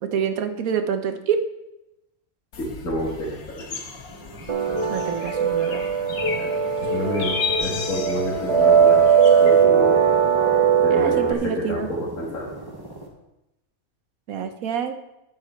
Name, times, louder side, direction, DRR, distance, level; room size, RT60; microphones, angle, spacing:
voice 1, 0.0-1.4 4.9-5.8 7.2-7.3 10.9-11.9 14.3-15.0, right 7 dB, 90° right, 8 dB, 1.3 m, -26 dB
sound 1, 2.5-9.6, left 5 dB, 90° left, 1.6 m, -34 dB
voice 2, 2.6-3.8 6.4-6.5 6.9-9.1 9.4-10.0 10.8-12.5, equal, 65° left, -5 dB, 2.2 m, -29 dB
sound 2, 3.8-13.1, right 1 dB, 15° right, 1.3 m, -40 dB
sound 3, 4.5-11.3, right 6 dB, 45° right, 0.4 m, -19 dB
9.9 x 8.7 x 4.4 m, 0.93 s
omnidirectional pair, 1.4 m